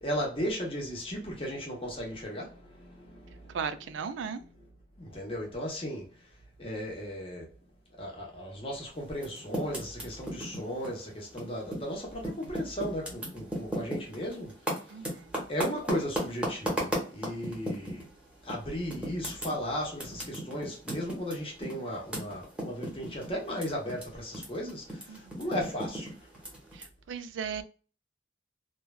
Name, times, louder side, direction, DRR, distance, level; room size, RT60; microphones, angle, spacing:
voice 1, 0.0-3.6 5.0-6.1 6.6-7.5 8.0-14.5 15.5-18.1 18.4-26.1, equal, 30° left, 0.9 m, -36 dB
voice 2, 3.5-4.4 14.9-15.4 25.1-25.4 26.7-27.6, right 6 dB, 80° right, 0.3 m, -37 dB
Typing, 9.1-11.9 12.2-18.1 18.5-18.6 18.9-24.0 24.3-26.8, right 1 dB, 5° right, 0.8 m, -35 dB
3.1 x 2.2 x 2.3 m
head